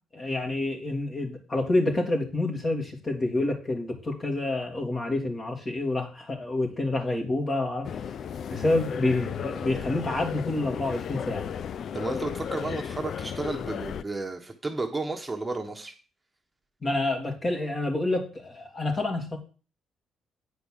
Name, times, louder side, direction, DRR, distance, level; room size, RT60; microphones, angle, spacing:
voice 1, 0.1-7.9 8.5-11.5 16.8-19.4, left 2 dB, 35° left, 2 dB, 2.9 m, -28 dB
sound 1, 7.8-14.0, left 7 dB, 60° left, 0.4 m, -34 dB
voice 2, 11.9-15.9, right 3 dB, 15° right, 3 dB, 1.3 m, -32 dB
9.2 x 5.1 x 6.6 m, 0.36 s
cardioid pair, 90°, 0 cm